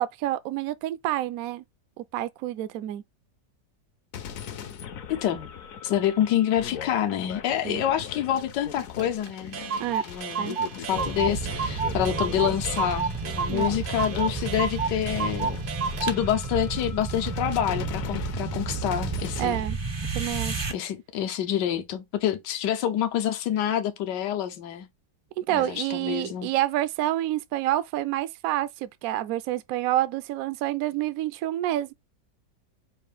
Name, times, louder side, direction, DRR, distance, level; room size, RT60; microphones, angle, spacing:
voice 1, 0.0-1.6 2.0-3.0 7.6-7.8 9.8-10.0 10.4-10.6 13.5-13.7 19.4-19.8 20.1-20.6 25.4-31.9, right 13 dB, 70° right, 0.9 m, -28 dB
sound 1, 4.1-19.6, left 8 dB, 60° left, 1.0 m, -39 dB
voice 2, 5.1-5.5 5.8-15.5 16.0-19.6 20.7-24.9 25.5-26.5, left 10 dB, 80° left, 1.4 m, -27 dB
Clock, 9.0-9.1 9.3-9.4 9.5-16.2, right 5 dB, 90° right, 0.4 m, -31 dB
sound 2, 11.0-20.7, right 4 dB, 30° right, 0.4 m, -32 dB
5.4 x 2.5 x 3.4 m
omnidirectional pair, 1.9 m